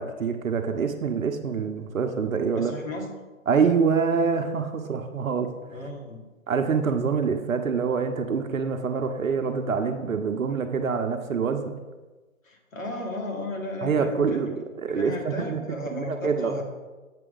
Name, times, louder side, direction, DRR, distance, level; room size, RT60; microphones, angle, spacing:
voice 1, 0.0-2.7 3.5-5.5 6.5-11.7 13.8-14.6 14.8-16.5, right 5 dB, 70° right, 6 dB, 0.9 m, -25 dB
voice 2, 2.5-3.1 5.7-6.2 12.4-14.5 14.9-16.6, left 1 dB, 65° left, 1 dB, 1.8 m, -34 dB
7.6 x 6.0 x 3.8 m, 1.2 s
hypercardioid pair, 175°, 42 cm